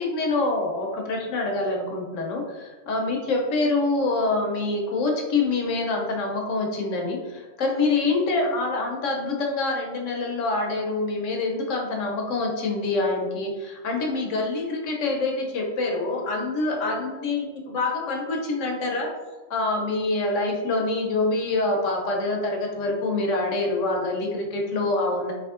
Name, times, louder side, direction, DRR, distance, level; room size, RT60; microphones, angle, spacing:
voice 1, 0.0-19.1 19.5-25.3, left 3 dB, 80° left, 1 dB, 1.0 m, -26 dB
3.4 x 2.9 x 2.4 m, 1.2 s
omnidirectional pair, 1.3 m